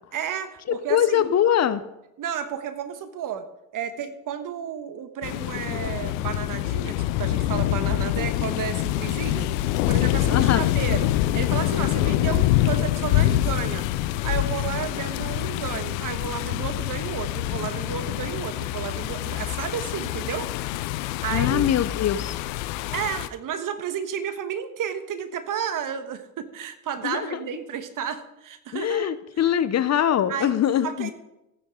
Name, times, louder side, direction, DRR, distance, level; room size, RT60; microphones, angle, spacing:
voice 1, 0.1-1.3 2.2-3.4 3.7-9.5 9.9-13.8 14.2-20.5 21.2-21.7 22.9-29.2 30.3-31.1, right 8 dB, 50° right, 10 dB, 1.4 m, -32 dB
voice 2, 0.7-1.8 10.3-10.7 21.3-22.4 27.0-27.4 28.7-31.1, left 10 dB, 40° left, 14 dB, 0.8 m, -23 dB
sound 1, 5.2-23.3, left 14 dB, 75° left, 0.7 m, -25 dB
15.0 x 9.5 x 3.8 m, 0.89 s
hypercardioid pair, 65°, 40 cm